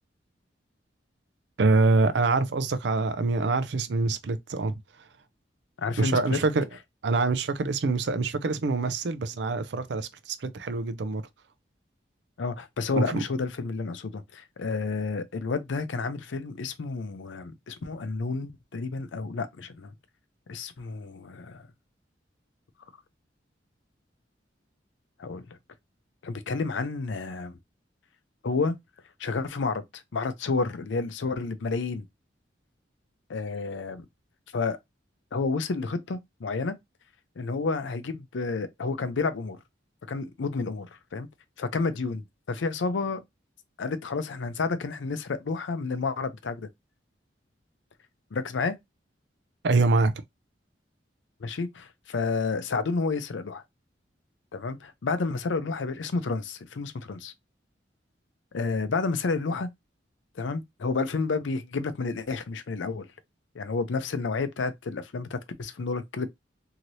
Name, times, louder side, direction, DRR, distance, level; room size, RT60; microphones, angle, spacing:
voice 1, 1.6-4.8 6.0-6.6 7.0-11.2 12.9-13.2 49.6-50.1, right 3 dB, 65° right, 0.4 m, -25 dB
voice 2, 5.8-6.4 12.4-19.9 20.5-21.7 25.2-25.6 26.2-27.6 28.4-28.8 29.2-32.1 33.3-34.0 34.5-34.8 35.3-36.8 37.4-39.6 40.1-40.9 41.1-41.3 41.6-43.2 43.8-46.7 48.3-48.7 51.4-53.6 54.5-57.3 58.5-59.7 60.4-63.1 63.5-66.3, left 4 dB, 85° left, 0.5 m, -30 dB
2.8 x 2.7 x 3.0 m
head